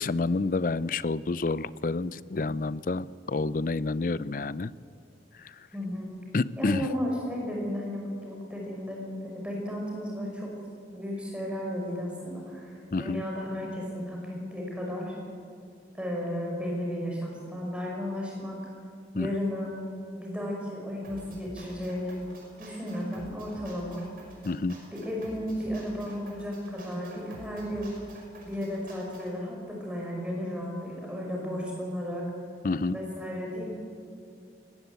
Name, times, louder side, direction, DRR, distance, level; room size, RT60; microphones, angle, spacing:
voice 1, 0.0-4.7 5.3-5.7 6.3-6.9 12.9-13.2 19.1-19.3 24.4-24.8 32.6-33.0, left 3 dB, 50° left, 18 dB, 0.5 m, -29 dB
voice 2, 5.7-6.1 6.6-10.5 10.9-15.2 15.9-18.6 19.1-19.7 20.1-22.2 22.6-24.0 24.9-27.9 28.4-32.3 32.9-33.7, equal, 5° right, -2 dB, 5.3 m, -34 dB
sound 1, 21.0-29.3, right 1 dB, 50° right, 5.5 m, -49 dB
21.5 x 18.5 x 8.2 m, 2.3 s
head